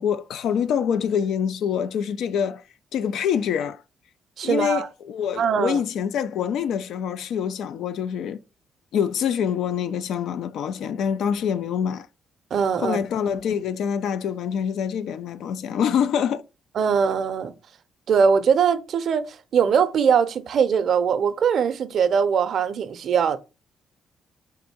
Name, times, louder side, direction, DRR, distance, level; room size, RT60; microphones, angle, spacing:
voice 1, 0.0-2.6 2.9-3.8 4.4-8.4 8.9-12.1 12.8-16.4, left 8 dB, 75° left, 0.3 m, -25 dB
voice 2, 4.4-4.9 5.4-5.8 12.5-13.0 16.7-17.5 18.1-23.4, right 6 dB, 60° right, 0.5 m, -21 dB
3.6 x 2.6 x 4.4 m
cardioid pair, 90°, 0 cm